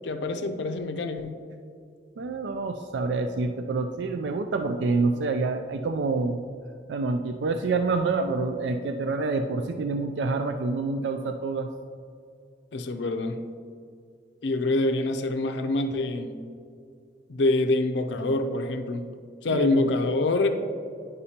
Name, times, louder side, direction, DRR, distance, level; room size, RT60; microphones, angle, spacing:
voice 1, 0.0-1.3 12.7-13.4 14.4-16.4 17.3-19.1 19.4-20.5, left 2 dB, 70° left, 7 dB, 0.5 m, -25 dB
voice 2, 2.2-6.4 6.9-11.7 19.5-19.9, right 3 dB, 70° right, 7 dB, 0.4 m, -27 dB
9.9 x 5.4 x 2.8 m, 2.3 s
head